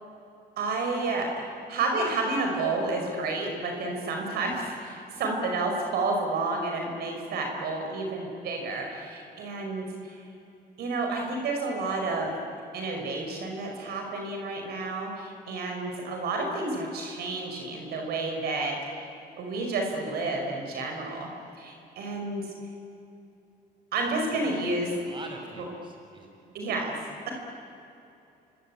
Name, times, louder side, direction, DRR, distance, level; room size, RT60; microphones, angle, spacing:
voice 1, 0.6-1.3 1.7-10.2 10.8-12.4 12.7-19.1 19.4-21.3 21.6-22.5 23.9-25.0 26.5-27.0, right 3 dB, 70° right, 2 dB, 5.4 m, -30 dB
voice 2, 24.3-24.8 25.0-26.6, right 2 dB, 30° right, 2 dB, 6.5 m, -45 dB
27.5 x 24.5 x 8.8 m, 2.8 s
cardioid pair, 110°, 17 cm